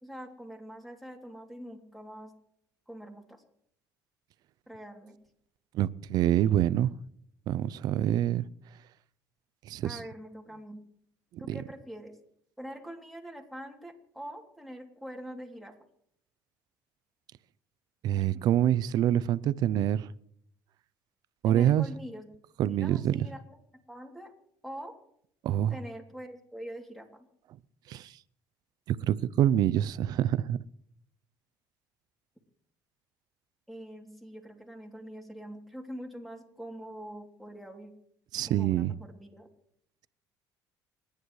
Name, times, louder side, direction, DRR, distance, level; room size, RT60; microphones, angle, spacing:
voice 1, 0.0-2.3 2.9-3.4 4.7-5.2 9.8-10.8 11.4-12.1 12.6-15.7 21.4-22.3 22.6-23.6 23.9-24.3 24.6-25.0 25.7-27.3 33.7-37.9 38.5-39.5, equal, ahead, 3.0 m, -44 dB
voice 2, 5.7-6.9 7.5-8.5 9.7-10.0 11.5-11.6 18.0-20.1 21.4-21.8 22.6-23.3 25.4-25.7 27.9-28.1 28.9-30.6 38.3-38.9, right 11 dB, 65° right, 0.6 m, -26 dB
29.0 x 10.5 x 3.2 m
cardioid pair, 100°, 7 cm